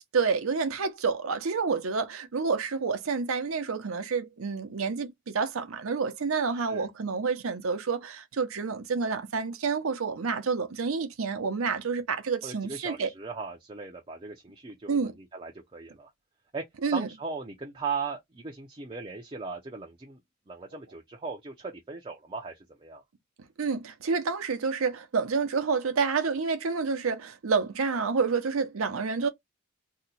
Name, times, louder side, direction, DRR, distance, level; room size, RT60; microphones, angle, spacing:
voice 1, 0.1-13.1 14.9-15.1 16.8-17.1 23.6-29.3, right 5 dB, 80° right, 0.6 m, -29 dB
voice 2, 6.5-6.9 12.4-16.1 16.5-16.6 16.9-20.2 20.5-23.0, right 4 dB, 25° right, 0.4 m, -38 dB
2.8 x 2.1 x 3.9 m
head